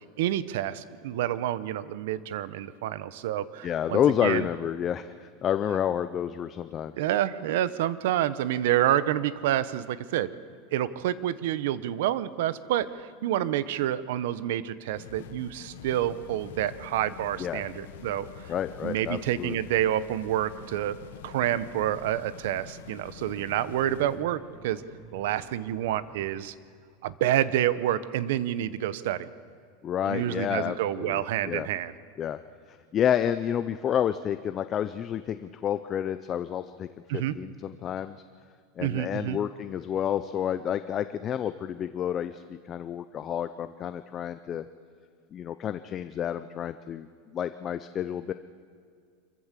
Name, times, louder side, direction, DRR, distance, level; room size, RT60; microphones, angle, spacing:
voice 1, 0.2-4.4 7.0-10.3 10.7-18.5 18.8-21.0 21.2-24.8 25.1-26.5 27.0-29.3 30.0-31.9 37.1-37.3 38.8-39.4, right 12 dB, 70° right, 16 dB, 0.9 m, -28 dB
voice 2, 3.6-6.9 17.4-17.6 18.5-19.6 29.8-31.7 32.2-32.4 32.7-38.2 38.8-44.7 45.3-48.3, left 9 dB, 25° left, 11 dB, 0.5 m, -30 dB
sound 1, 14.9-24.2, left 9 dB, 90° left, 1.2 m, -46 dB
sound 2, 19.6-26.3, left 3 dB, 60° left, 3.8 m, -53 dB
25.5 x 15.0 x 7.5 m, 2.1 s
supercardioid pair, 165°, 0 cm